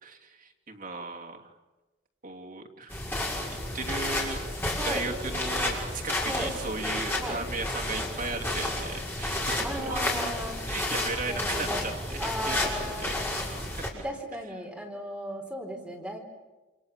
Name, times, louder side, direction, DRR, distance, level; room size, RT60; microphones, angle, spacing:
voice 1, 0.0-1.5 2.2-3.0 3.7-4.6 4.8-10.1 10.7-13.2 13.7-14.0, right 3 dB, 45° right, 1 dB, 3.1 m, -36 dB
sound 1, 2.9-13.9, left 1 dB, 10° left, 6.1 m, -31 dB
voice 2, 9.6-10.6 11.3-11.9 12.2-13.5 14.0-16.2, equal, 5° right, 1 dB, 4.3 m, -36 dB
28.5 x 27.5 x 7.5 m, 1.2 s
head